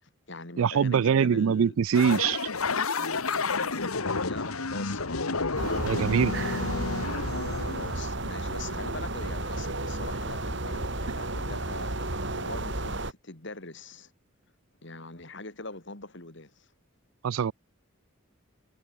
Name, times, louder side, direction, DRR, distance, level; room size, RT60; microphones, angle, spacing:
voice 1, 0.0-1.8 3.0-5.9 6.1-7.3 7.6-14.1 14.8-16.7, left 2 dB, 55° left, 3.1 m, -43 dB
voice 2, 0.6-2.4 5.8-6.3 17.2-17.5, right 7 dB, 70° right, 0.4 m, -23 dB
sound 1, 1.9-8.0, left 4 dB, 90° left, 1.9 m, -30 dB
sound 2, 5.6-13.1, right 2 dB, 55° right, 3.8 m, -32 dB
head